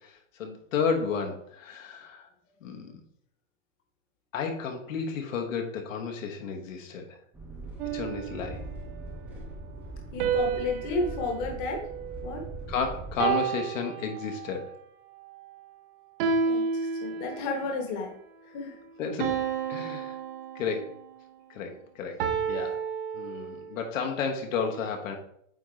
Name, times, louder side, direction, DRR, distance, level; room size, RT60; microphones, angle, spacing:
voice 1, 0.4-2.3 2.6-2.9 4.3-7.0 7.9-8.6 12.7-14.6 19.0-19.3 19.7-20.1 20.5-20.9 21.5-22.2 22.5-22.8 23.1-25.2, left 5 dB, 75° left, 3 dB, 1.3 m, -32 dB
sound 1, 7.3-13.3, right 2 dB, 5° right, 0.6 m, -41 dB
sound 2, 7.8-9.0 10.2-12.6 13.2-14.7 16.2-17.7 19.2-21.1 22.2-23.8, right 6 dB, 45° right, 0.8 m, -31 dB
voice 2, 10.1-11.9 12.2-12.4 16.4-18.1 18.4-18.8, left 3 dB, 30° left, 2 dB, 1.1 m, -32 dB
8.9 x 3.7 x 3.2 m, 0.70 s
supercardioid pair, 165°, 40 cm